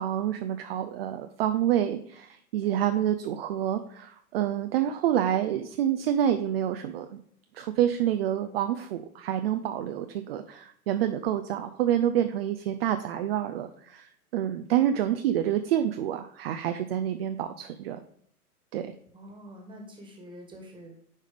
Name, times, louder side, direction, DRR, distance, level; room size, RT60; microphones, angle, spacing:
voice 1, 0.0-7.2 7.5-18.0 18.7-18.8, right 10 dB, 45° right, 8 dB, 0.5 m, -28 dB
voice 2, 19.1-21.0, equal, 10° right, 2 dB, 1.5 m, -46 dB
9.7 x 4.8 x 3.5 m, 0.65 s
hypercardioid pair, 110°, 45 cm